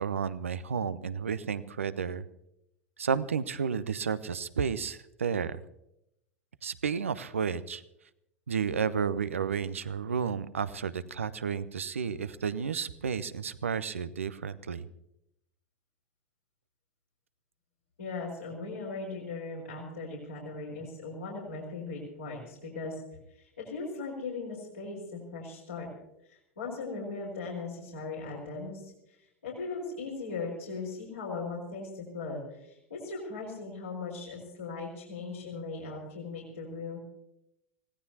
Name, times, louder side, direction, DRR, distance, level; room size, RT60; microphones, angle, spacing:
voice 1, 0.0-2.2 3.0-5.6 6.6-7.8 8.5-14.9, right 6 dB, 75° right, 15 dB, 0.7 m, -32 dB
voice 2, 18.0-23.0 23.3-25.9 26.2-29.1 29.4-37.0, left 3 dB, 80° left, -6 dB, 4.7 m, -38 dB
25.5 x 17.0 x 2.8 m, 0.83 s
figure-of-eight pair, 85°, 7 cm